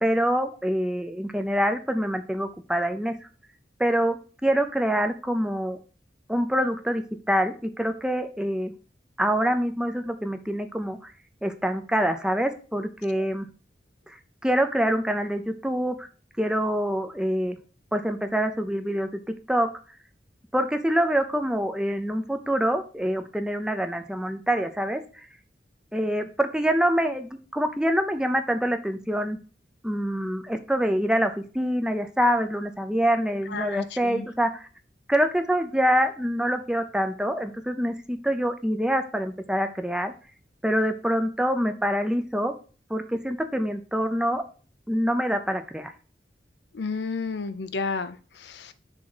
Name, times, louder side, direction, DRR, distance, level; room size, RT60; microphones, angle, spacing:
voice 1, 0.0-3.2 3.8-5.8 6.3-8.7 9.2-11.0 11.4-13.5 14.4-16.1 16.4-17.6 17.9-19.2 19.5-19.7 20.5-25.0 25.9-29.4 29.8-34.6 35.1-40.1 40.6-42.5 42.9-44.4 44.9-45.9, equal, 5° right, 7 dB, 0.6 m, -25 dB
voice 2, 33.5-34.2 46.7-48.7, left 4 dB, 70° left, 12 dB, 0.6 m, -32 dB
6.2 x 3.7 x 6.0 m, 0.37 s
head